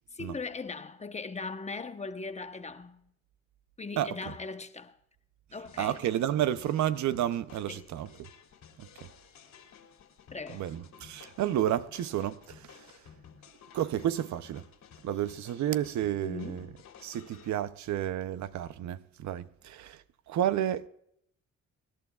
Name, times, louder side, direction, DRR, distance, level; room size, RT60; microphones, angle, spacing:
voice 1, 0.1-3.0 3.8-5.0 5.5-6.0 7.7-7.9 10.3-10.6 16.2-16.7, left 4 dB, 20° left, 0.9 m, -39 dB
voice 2, 4.0-4.3 5.8-8.3 8.8-8.9 10.5-13.0 13.7-14.7 15.0-16.7 17.0-20.9, right 11 dB, 70° right, 0.6 m, -31 dB
sound 1, 5.6-17.5, left 7 dB, 75° left, 2.5 m, -55 dB
24.5 x 11.0 x 2.3 m
cardioid pair, 90°, 30 cm